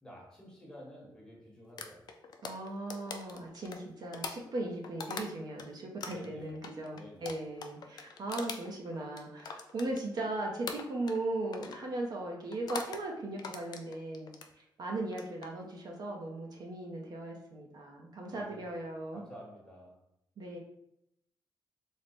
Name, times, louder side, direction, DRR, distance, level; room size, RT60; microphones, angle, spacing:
voice 1, 0.0-2.1 6.0-6.6 6.9-7.3 18.3-18.6 19.1-20.0, equal, 10° left, -3 dB, 1.1 m, -50 dB
sound 1, 1.8-5.7 6.0-10.3 10.7-11.3 11.5-11.9 12.5-13.0 13.4-14.5 15.0-15.5, left 5 dB, 60° left, 0.4 m, -42 dB
voice 2, 2.4-14.3 14.5-19.2 20.4-20.6, right 2 dB, 55° right, 0 dB, 0.6 m, -38 dB
3.1 x 2.0 x 4.1 m, 0.79 s
cardioid pair, 115°, 8 cm